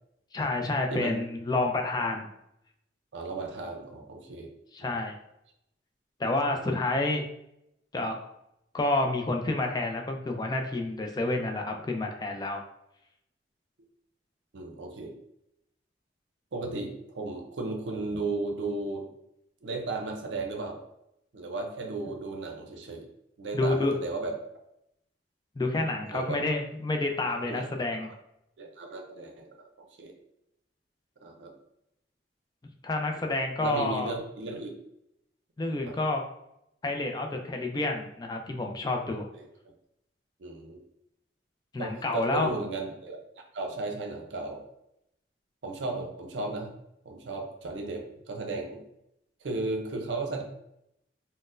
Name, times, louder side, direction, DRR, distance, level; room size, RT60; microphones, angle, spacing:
voice 1, 0.3-2.3 4.7-5.1 6.2-7.2 7.9-8.2 8.7-12.6 23.5-23.9 25.6-28.1 32.8-34.1 35.6-36.2 36.8-39.3 41.7-42.5, left 2 dB, 20° left, 3 dB, 0.3 m, -29 dB
voice 2, 3.1-4.5 4.8-5.0 6.5-6.6 14.5-15.2 16.5-19.1 19.6-20.8 21.3-23.0 23.4-24.4 26.1-26.4 27.5-28.1 28.6-30.1 31.2-31.5 33.1-33.2 33.6-34.8 35.8-35.9 39.4-39.5 40.4-40.8 41.8-43.2 43.5-44.6 45.6-46.7 47.0-48.8 49.4-50.4, right 3 dB, 85° right, 3 dB, 0.5 m, -35 dB
4.0 x 2.1 x 2.5 m, 0.81 s
head